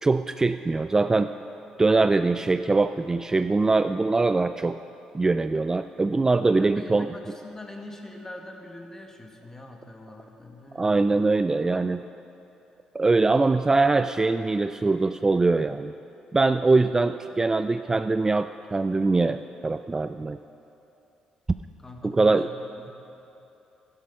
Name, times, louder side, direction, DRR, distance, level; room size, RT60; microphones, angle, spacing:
voice 1, 0.0-1.3 1.8-4.8 5.1-7.2 10.7-12.0 12.9-15.9 16.3-20.4 22.0-22.5, right 3 dB, 25° right, 10 dB, 0.3 m, -22 dB
voice 2, 6.5-11.1 21.8-22.9, left 1 dB, 20° left, 2 dB, 1.8 m, -43 dB
11.5 x 11.5 x 5.6 m, 2.9 s
supercardioid pair, 60°, 2 cm